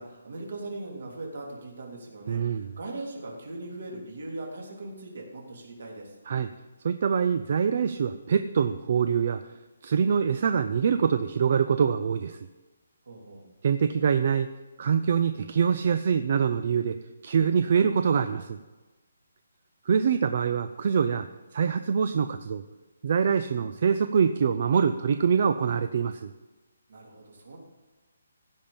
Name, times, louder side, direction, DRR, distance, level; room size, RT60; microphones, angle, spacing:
voice 1, 0.0-6.1 13.0-13.4 26.9-27.6, right 2 dB, 60° right, -1 dB, 3.2 m, -40 dB
voice 2, 2.3-2.7 6.3-6.5 6.8-9.4 9.8-12.4 13.6-14.5 14.8-17.0 17.2-18.6 19.9-21.3 21.5-22.6 23.0-26.3, right 6 dB, 35° right, 10 dB, 0.4 m, -24 dB
15.5 x 5.3 x 7.0 m, 1.2 s
hypercardioid pair, 180°, 0 cm